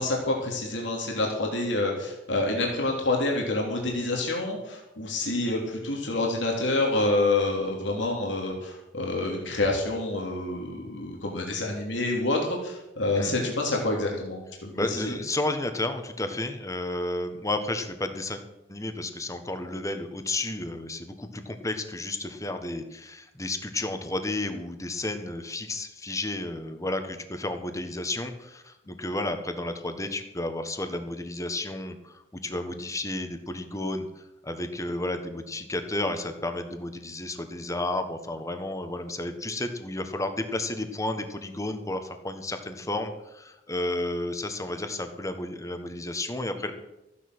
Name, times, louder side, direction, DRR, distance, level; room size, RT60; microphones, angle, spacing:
voice 1, 0.0-15.1, left 2 dB, 90° left, -1 dB, 3.0 m, -27 dB
voice 2, 14.7-18.4 18.7-46.7, left 2 dB, 20° left, 8 dB, 1.4 m, -32 dB
14.5 x 9.7 x 6.2 m, 0.93 s
head